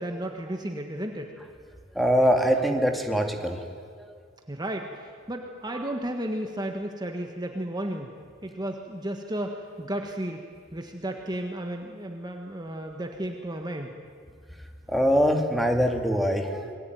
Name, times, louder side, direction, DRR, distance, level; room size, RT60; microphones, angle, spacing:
voice 1, 0.0-1.3 4.5-8.1 8.4-10.4 10.7-13.9, right 1 dB, 20° right, 3 dB, 1.6 m, -33 dB
voice 2, 2.0-3.6 14.9-16.8, equal, ahead, 4 dB, 2.2 m, -23 dB
28.0 x 22.0 x 9.5 m, 2.1 s
head